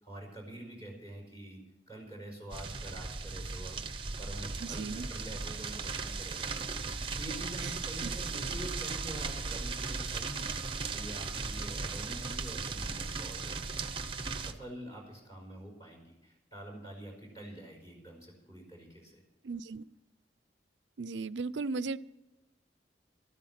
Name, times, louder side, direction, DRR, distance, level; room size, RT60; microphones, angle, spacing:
voice 1, 0.0-1.6 1.9-3.8 4.2-13.6 14.4-19.2, right 1 dB, 20° left, 0 dB, 5.3 m, -46 dB
sound 1, 2.5-14.5, right 4 dB, 30° right, 0.9 m, -37 dB
voice 2, 4.6-5.1 7.6-7.7 8.0-8.1 19.4-19.8 21.0-22.0, right 4 dB, 85° right, 17 dB, 0.5 m, -36 dB
14.0 x 12.5 x 5.8 m, 0.97 s
head